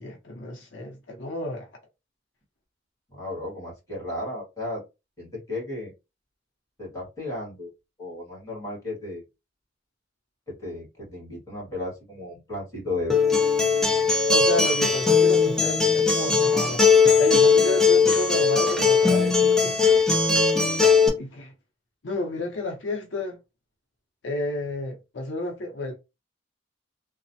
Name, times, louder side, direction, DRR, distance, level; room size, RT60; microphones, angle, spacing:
voice 1, 0.0-1.7 14.3-19.8 21.2-21.5 22.0-23.4 24.2-25.9, left 1 dB, 75° left, 0.6 m, -31 dB
voice 2, 3.1-4.8 5.2-5.9 6.8-7.7 8.0-9.2 10.5-13.2, left 2 dB, 20° left, 1.8 m, -34 dB
Acoustic guitar, 13.1-21.1, left 5 dB, 5° left, 0.6 m, -19 dB
3.1 x 2.0 x 2.7 m
head